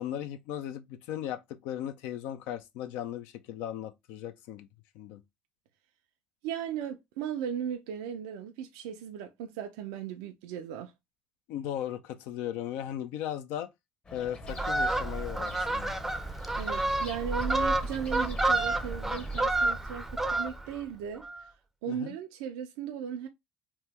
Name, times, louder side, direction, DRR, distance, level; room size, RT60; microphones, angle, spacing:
voice 1, 0.0-4.7 4.9-5.2 11.5-13.7 14.1-15.9 21.9-22.1, left 11 dB, 75° left, 0.4 m, -37 dB
voice 2, 6.4-10.9 16.6-21.2 21.8-23.3, right 8 dB, 85° right, 0.4 m, -37 dB
sound 1, 14.0-19.5, left 2 dB, 30° left, 0.8 m, -46 dB
Fowl, 14.5-20.8 21.1-21.4, right 2 dB, 5° right, 0.5 m, -29 dB
2.9 x 2.1 x 3.4 m
supercardioid pair, 90°, 3 cm